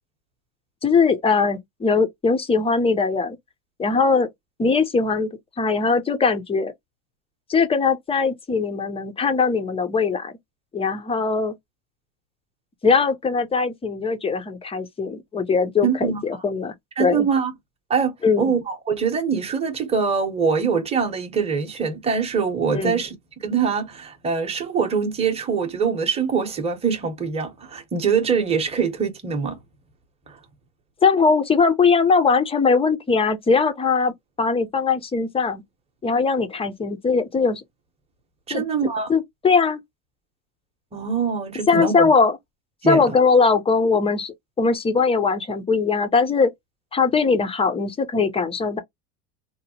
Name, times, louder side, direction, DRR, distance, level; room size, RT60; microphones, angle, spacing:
voice 1, 0.8-3.4 3.8-4.3 4.6-5.3 5.6-6.7 7.5-10.3 10.7-11.5 12.8-16.7 17.0-17.3 18.2-18.5 22.7-23.0 31.0-34.1 34.4-35.6 36.0-37.6 38.5-38.6 39.1-39.8 41.7-42.4 42.9-46.5 46.9-48.8, left 4 dB, 15° left, 0.4 m, -20 dB
voice 2, 15.8-16.2 17.0-17.5 17.9-23.2 23.4-29.6 30.3-30.4 38.5-39.1 40.9-42.1 42.8-43.1, right 6 dB, 15° right, 0.7 m, -23 dB
2.8 x 2.1 x 2.8 m
supercardioid pair, 105°, 46 cm